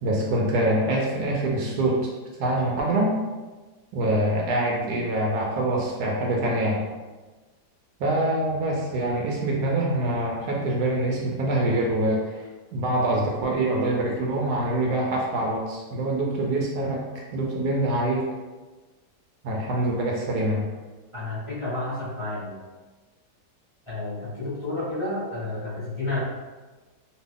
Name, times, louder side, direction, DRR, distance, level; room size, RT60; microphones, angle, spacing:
voice 1, 0.0-2.1 2.4-3.1 3.9-6.8 8.0-12.4 12.7-17.0 17.3-18.2 19.4-20.7, right 1 dB, 75° right, -2 dB, 1.0 m, -25 dB
voice 2, 21.1-22.6 23.9-26.2, left 2 dB, 20° left, -10 dB, 0.9 m, -31 dB
3.0 x 2.4 x 3.5 m, 1.3 s
omnidirectional pair, 1.8 m